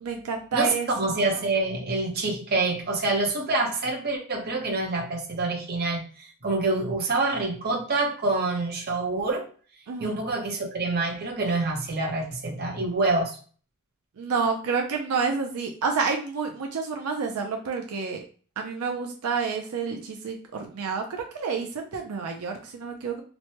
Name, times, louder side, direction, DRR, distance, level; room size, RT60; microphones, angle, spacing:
voice 1, 0.0-0.9 9.9-10.2 14.2-18.2 18.6-23.2, right 5 dB, 85° right, 3 dB, 0.5 m, -29 dB
voice 2, 0.5-9.4 10.0-13.4, right 2 dB, 45° right, 0 dB, 0.8 m, -26 dB
3.0 x 2.1 x 2.8 m, 0.41 s
head